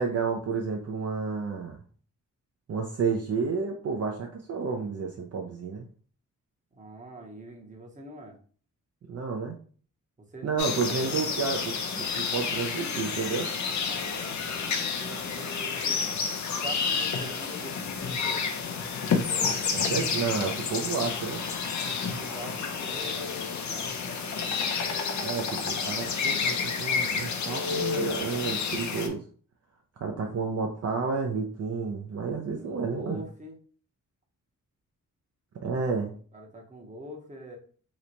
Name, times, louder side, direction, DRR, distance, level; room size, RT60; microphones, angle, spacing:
voice 1, 0.0-1.8 2.7-5.9 9.1-9.6 10.4-13.5 19.7-21.4 25.2-29.2 30.0-33.2 35.6-36.1, right 5 dB, 50° right, 1 dB, 0.5 m, -31 dB
voice 2, 6.7-8.4 10.3-11.3 13.9-16.0 16.5-18.5 22.1-24.0 32.6-33.6 36.3-37.6, equal, 25° right, 1 dB, 0.8 m, -44 dB
sound 1, 10.6-29.1, left 5 dB, 60° left, 0.6 m, -30 dB
3.0 x 2.1 x 3.8 m, 0.43 s
wide cardioid pair, 120°, 32 cm